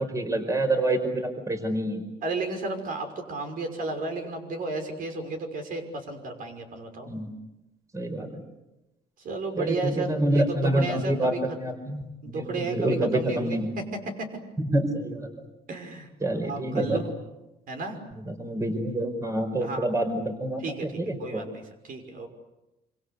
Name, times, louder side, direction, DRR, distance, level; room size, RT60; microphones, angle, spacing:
voice 1, 0.0-2.0 7.1-7.3 7.9-8.4 9.6-11.3 11.6-13.8 14.6-15.3 16.2-17.0 18.3-20.6 21.0-21.4, right 1 dB, 20° right, 7 dB, 4.9 m, -27 dB
voice 2, 2.2-7.1 9.2-11.4 12.2-14.3 15.7-16.1 16.4-17.1 17.7-18.0 19.6-20.0 20.6-22.3, right 3 dB, 55° right, 5 dB, 5.9 m, -33 dB
26.5 x 26.5 x 8.2 m, 0.97 s
cardioid pair, 110°, 17 cm